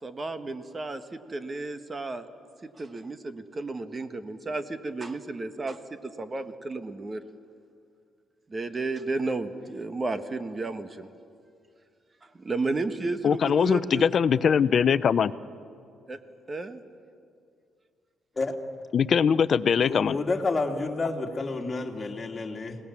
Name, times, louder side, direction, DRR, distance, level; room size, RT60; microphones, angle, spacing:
voice 1, 0.0-2.3 2.6-7.2 8.5-11.1 12.2-14.1 16.1-16.2 16.5-16.8, right 3 dB, 30° right, 10 dB, 1.4 m, -33 dB
voice 2, 13.2-15.3 18.9-20.2, left 7 dB, 50° left, 16 dB, 0.7 m, -22 dB
voice 3, 19.9-22.8, left 3 dB, 30° left, 2 dB, 2.5 m, -29 dB
29.0 x 18.0 x 7.4 m, 2.4 s
cardioid pair, 95°, 0 cm